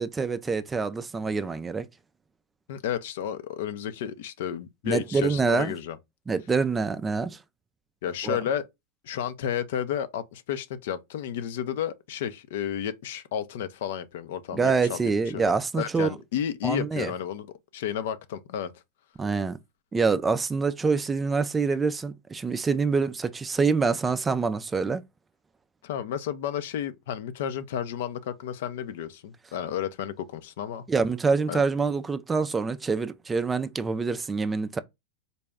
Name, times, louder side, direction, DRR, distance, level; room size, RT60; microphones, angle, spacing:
voice 1, 0.0-1.9 4.9-5.7 6.3-7.4 8.2-8.4 14.5-16.1 16.6-17.1 19.2-19.6 19.9-25.0 30.9-34.8, right 4 dB, 15° right, 0.4 m, -26 dB
voice 2, 2.7-6.0 8.0-8.6 9.0-15.0 15.3-17.5 17.7-18.7 25.8-30.8 31.5-31.6, left 9 dB, 65° left, 0.5 m, -32 dB
4.0 x 2.2 x 3.4 m
hypercardioid pair, 105°, 0 cm